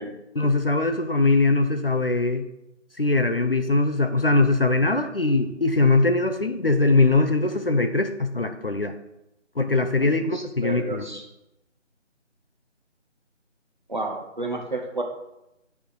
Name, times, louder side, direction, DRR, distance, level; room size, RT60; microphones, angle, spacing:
voice 1, 0.3-2.4 3.0-9.0 9.6-11.2, left 3 dB, 50° left, 7 dB, 0.5 m, -21 dB
voice 2, 10.0-11.2 13.9-15.0, right 2 dB, 40° right, 2 dB, 0.8 m, -31 dB
9.1 x 3.5 x 4.6 m, 0.89 s
figure-of-eight pair, 175°, 37 cm